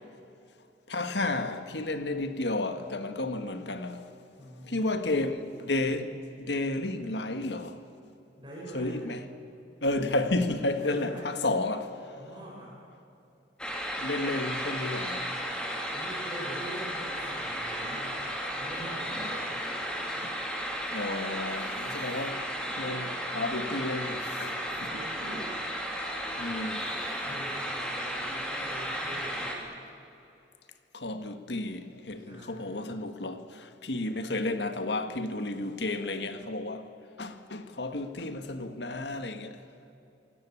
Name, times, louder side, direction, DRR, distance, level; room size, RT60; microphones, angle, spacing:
voice 1, 0.9-4.1 4.7-7.8 8.7-9.2 9.8-12.0 14.0-15.3 20.2-20.3 20.9-22.4 22.8-24.6 26.4-26.9 30.9-36.9 37.2-39.6, left 2 dB, 70° left, 1.7 m, -32 dB
voice 2, 4.4-4.9 8.4-9.1 10.7-11.4 12.1-12.9 15.9-18.3 18.5-19.8 20.1-20.4 20.7-20.8 24.8-25.5 27.2-29.6 32.1-32.7, right 1 dB, 25° right, 5.7 m, -44 dB
sound 1, 13.6-29.6, equal, 5° left, 3.0 m, -34 dB
27.5 x 17.5 x 8.6 m
head